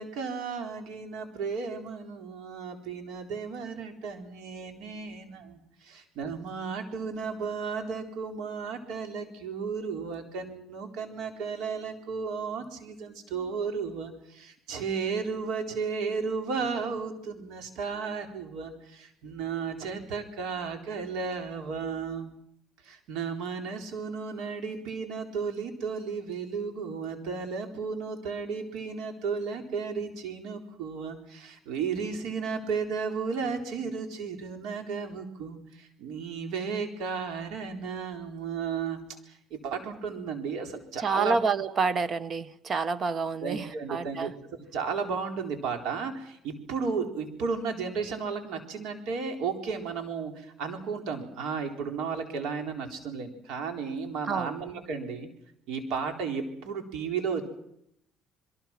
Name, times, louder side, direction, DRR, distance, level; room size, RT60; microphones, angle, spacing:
voice 1, 0.0-22.3 22.8-41.4 43.4-44.3 44.7-55.3 55.7-57.4, right 5 dB, 75° right, 4.0 m, -34 dB
voice 2, 41.0-44.3 54.3-54.5, right 4 dB, 35° right, 1.1 m, -28 dB
27.5 x 22.5 x 6.0 m
cardioid pair, 130°, 0 cm